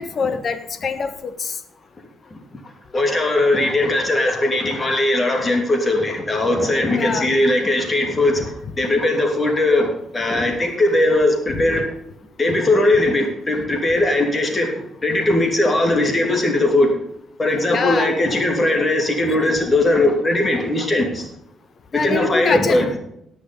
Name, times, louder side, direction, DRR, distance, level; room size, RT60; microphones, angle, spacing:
voice 1, 0.0-1.6 6.9-7.3 11.5-11.8 17.7-18.2 21.9-22.8, left 5 dB, 50° left, 10 dB, 1.4 m, -24 dB
voice 2, 2.9-11.8 12.4-17.0 17.4-21.3 21.9-22.9, left 1 dB, 30° left, 3 dB, 3.2 m, -19 dB
18.0 x 6.6 x 5.4 m, 0.76 s
cardioid pair, 90°, 0 cm